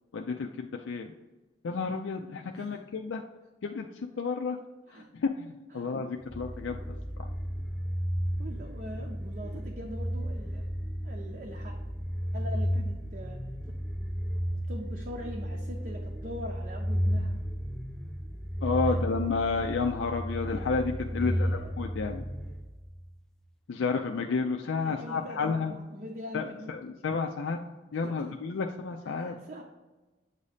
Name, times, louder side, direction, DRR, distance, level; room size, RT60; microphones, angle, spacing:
voice 1, 0.1-1.1 1.6-3.2 3.6-4.6 4.9-7.3 18.6-22.3 23.7-25.8 26.3-27.6 27.9-29.4, left 4 dB, 85° left, 3 dB, 0.4 m, -31 dB
sound 1, 6.2-23.1, equal, 5° left, 0.3 m, -33 dB
voice 2, 8.4-10.7 11.0-11.7 12.3-13.4 14.7-17.4 21.1-21.7 24.8-26.7 28.0-28.1 29.5-29.6, equal, 50° right, 0 dB, 0.6 m, -42 dB
8.1 x 2.7 x 4.9 m, 1.2 s
head